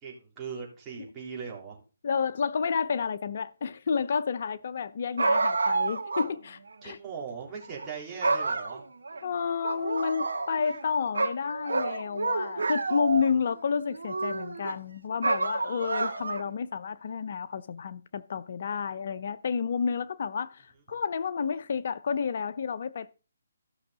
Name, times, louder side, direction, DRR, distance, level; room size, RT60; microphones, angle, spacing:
voice 1, 0.0-1.8 6.8-8.8, right 6 dB, 15° right, 3.5 m, -39 dB
voice 2, 2.0-7.0 9.2-23.1, left 6 dB, 55° left, 0.6 m, -30 dB
sound 1, 5.2-6.3 6.7-6.8 7.6-7.9 8.2-9.2 9.6-10.8 11.1-13.4 13.9-14.7 15.2-16.5, right 3 dB, 80° right, 1.8 m, -29 dB
14.5 x 6.2 x 4.0 m
hypercardioid pair, 155°, 0 cm